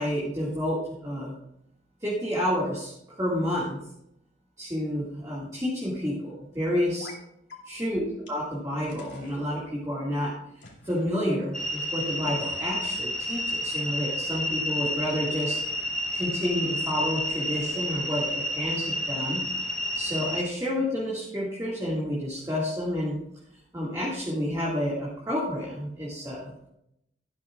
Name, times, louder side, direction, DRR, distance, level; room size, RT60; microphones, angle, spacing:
voice 1, 0.0-1.4 2.0-3.8 4.6-7.1 7.7-10.3 10.8-15.6 16.1-19.4 19.9-23.2 23.7-26.7, equal, 15° right, -6 dB, 2.1 m, -30 dB
sound 1, 7.0-7.2 7.5-7.6 8.3-8.4 8.9-9.4 10.6-11.1 12.2-12.9, left 2 dB, 75° left, 2.8 m, -46 dB
sound 2, 11.5-20.4, equal, 5° left, 1.2 m, -30 dB
12.5 x 12.0 x 2.5 m, 0.78 s
head